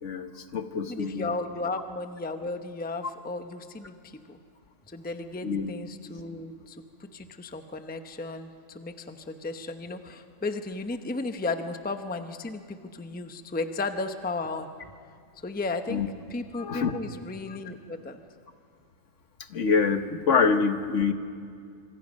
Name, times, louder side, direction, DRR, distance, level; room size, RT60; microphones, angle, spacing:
voice 1, 0.0-1.3 5.4-5.7 15.9-16.1 16.5-17.0 19.5-21.1, left 5 dB, 60° left, 8 dB, 1.4 m, -25 dB
voice 2, 0.9-4.4 4.9-14.7 15.4-16.0 16.3-18.2, left 3 dB, 10° left, 7 dB, 0.7 m, -34 dB
26.0 x 25.0 x 5.4 m, 2.3 s
omnidirectional pair, 1.5 m